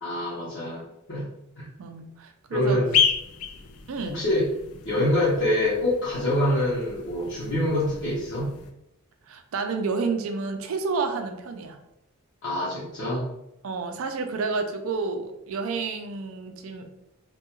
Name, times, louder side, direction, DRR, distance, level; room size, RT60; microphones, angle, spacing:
voice 1, 0.0-1.3 1.6-1.7 2.5-2.9 4.0-4.5 4.8-8.5 12.4-13.3, left 1 dB, 55° left, -9 dB, 0.7 m, -25 dB
voice 2, 1.8-2.8 3.9-4.2 9.3-11.8 13.6-16.9, right 4 dB, 65° right, 6 dB, 0.4 m, -30 dB
sound 1, 2.8-8.7, left 7 dB, 80° left, 0.3 m, -31 dB
2.2 x 2.2 x 2.9 m, 0.83 s
head